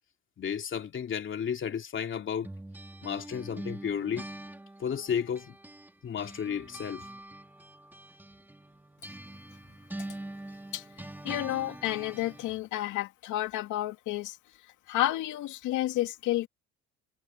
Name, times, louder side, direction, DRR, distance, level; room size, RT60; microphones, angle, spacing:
voice 1, 0.4-2.5 3.0-4.2 4.8-5.6 6.0-7.1, left 8 dB, 40° left, 2.7 m, -33 dB
sound 1, 2.4-5.9 6.2-12.6, right 1 dB, 5° right, 1.9 m, -44 dB
voice 2, 11.2-14.4 14.9-16.5, left 14 dB, 80° left, 2.5 m, -30 dB
cardioid pair, 115°, 29 cm